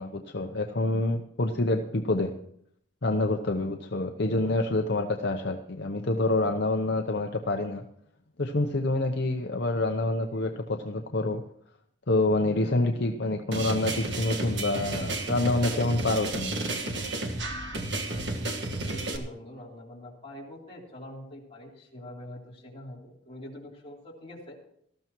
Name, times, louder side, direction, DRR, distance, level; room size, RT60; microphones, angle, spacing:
voice 1, 0.0-2.3 3.0-7.8 8.4-11.4 12.1-16.5, left 2 dB, 55° left, 4 dB, 0.8 m, -27 dB
sound 1, 13.5-19.2, right 2 dB, 55° right, 1.5 m, -32 dB
voice 2, 18.8-24.6, left 1 dB, 30° left, -4 dB, 3.3 m, -44 dB
18.5 x 13.5 x 3.0 m, 0.71 s
head